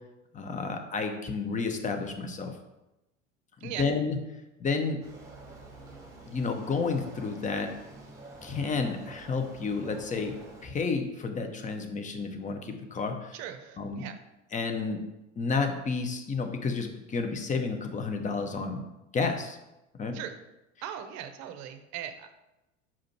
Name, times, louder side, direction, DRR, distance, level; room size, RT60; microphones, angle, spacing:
voice 1, 0.3-2.6 3.6-4.2 4.6-5.0 6.3-7.7 8.4-10.3 10.6-13.3 13.8-14.1 14.5-15.0 15.4-18.8 19.1-19.6 20.0-20.2, left 4 dB, 20° left, 6 dB, 0.9 m, -31 dB
sound 1, 5.0-10.7, right 2 dB, 10° right, 2.0 m, -48 dB
voice 2, 13.3-14.2 20.1-20.4 20.8-22.3, right 10 dB, 45° right, 9 dB, 0.8 m, -39 dB
5.8 x 4.8 x 4.5 m, 0.97 s
figure-of-eight pair, 75°, 38 cm